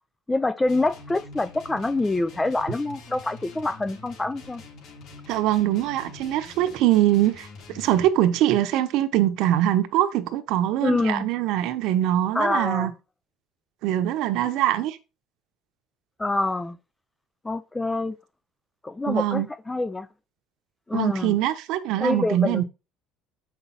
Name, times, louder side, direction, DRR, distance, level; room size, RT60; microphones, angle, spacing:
voice 1, 0.3-4.6 10.8-11.3 12.3-12.9 16.2-16.8 17.4-18.2 18.8-20.1 20.9-21.4 22.0-22.6, left 2 dB, 10° left, 0.5 m, -26 dB
sound 1, 0.6-8.1, left 3 dB, 55° left, 2.9 m, -45 dB
voice 2, 5.3-7.5 7.7-12.9 13.8-15.0 19.1-19.5 20.9-22.6, right 13 dB, 70° right, 1.1 m, -23 dB
7.9 x 5.7 x 4.2 m
cardioid pair, 145°, 0 cm